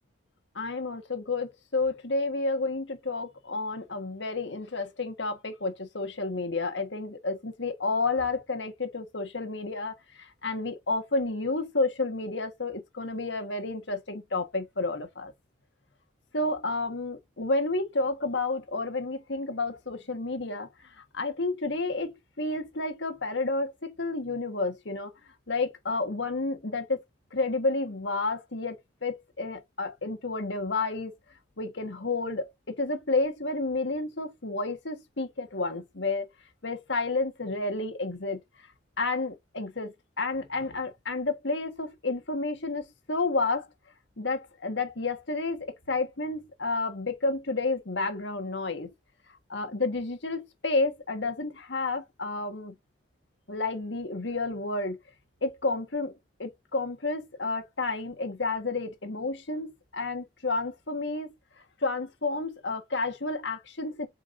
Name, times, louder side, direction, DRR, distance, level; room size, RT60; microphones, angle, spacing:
voice 1, 0.5-15.3 16.3-20.7 21.1-25.1 25.5-27.0 27.3-31.1 31.6-36.3 36.6-38.4 39.0-43.7 44.2-48.9 49.5-52.7 53.5-55.0 55.4-56.1 56.4-61.3 61.8-64.1, left 3 dB, 65° left, 1.5 m, -30 dB
8.0 x 4.8 x 2.7 m
head